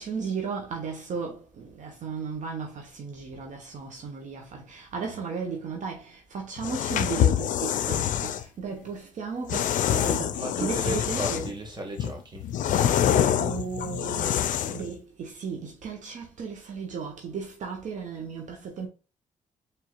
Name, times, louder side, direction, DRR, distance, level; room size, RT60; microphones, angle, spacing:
voice 1, 0.0-11.6 13.4-18.9, right 5 dB, 70° right, 1.2 m, -35 dB
sound 1, 6.6-8.4 9.5-11.6 12.0-14.9, left 10 dB, 80° left, 0.4 m, -26 dB
voice 2, 10.3-12.5, right 1 dB, 35° right, 2.0 m, -35 dB
4.5 x 3.6 x 2.5 m
cardioid pair, 70°, 13 cm